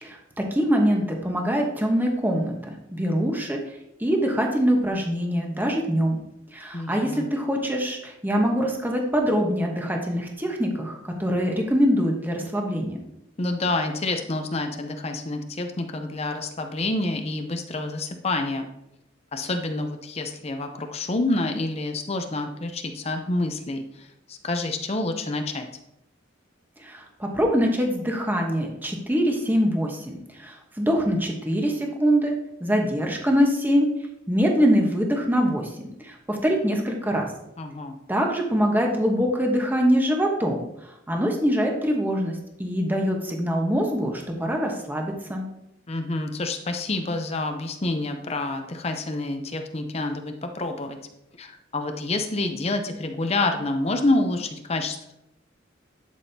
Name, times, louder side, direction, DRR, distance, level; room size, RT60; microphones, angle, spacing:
voice 1, 0.0-2.5 2.9-3.6 4.0-6.2 6.5-13.0 26.8-32.3 32.6-33.9 34.3-37.3 38.1-40.6 41.1-45.4, equal, 10° right, 1 dB, 1.1 m, -24 dB
voice 2, 6.7-7.3 13.4-18.7 19.3-25.7 37.6-38.0 45.9-51.0 51.4-55.1, left 2 dB, 35° left, 5 dB, 0.6 m, -28 dB
11.0 x 6.3 x 2.8 m, 0.82 s
head